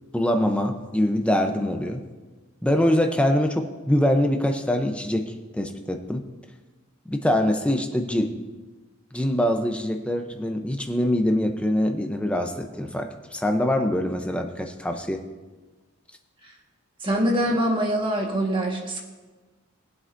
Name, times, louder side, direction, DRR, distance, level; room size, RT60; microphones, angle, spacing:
voice 1, 0.1-2.0 2.6-6.2 7.1-8.3 9.1-15.2, left 1 dB, 5° left, 4 dB, 0.6 m, -24 dB
voice 2, 17.0-19.0, right 1 dB, 25° right, 0 dB, 1.5 m, -24 dB
22.5 x 7.8 x 2.6 m, 1.3 s
head